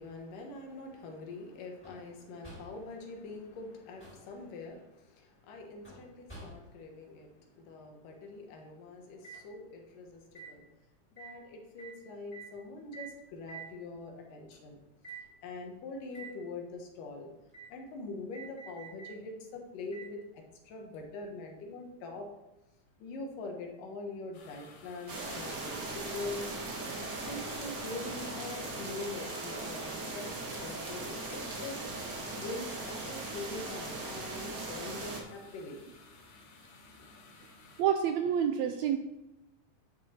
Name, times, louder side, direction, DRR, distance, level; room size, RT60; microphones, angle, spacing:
voice 1, 0.0-10.7 11.2-14.8 15.4-17.3 17.7-22.3 23.0-26.5 27.1-30.3 30.6-31.8 32.4-35.8, left 3 dB, 85° left, 2 dB, 3.0 m, -43 dB
sound 1, 1.8-2.1 2.4-2.9 3.8-4.3 5.8-6.8 9.2-9.4 10.4-10.5 11.2-11.4 11.8-12.0 12.3-12.5 12.9-13.2 13.5-13.7 14.5-14.6 15.0-15.3 16.1-16.4 17.5-17.7 18.3-19.2 19.9-20.1 20.9-21.0, right 5 dB, 5° left, 3.3 m, -48 dB
sound 2, 24.3-37.8, left 3 dB, 60° left, 2.2 m, -56 dB
sound 3, 25.1-35.2, right 2 dB, 40° right, 1.4 m, -39 dB
voice 2, 37.8-39.0, right 9 dB, 80° right, 7 dB, 1.6 m, -28 dB
10.5 x 6.5 x 4.4 m, 0.97 s
omnidirectional pair, 3.7 m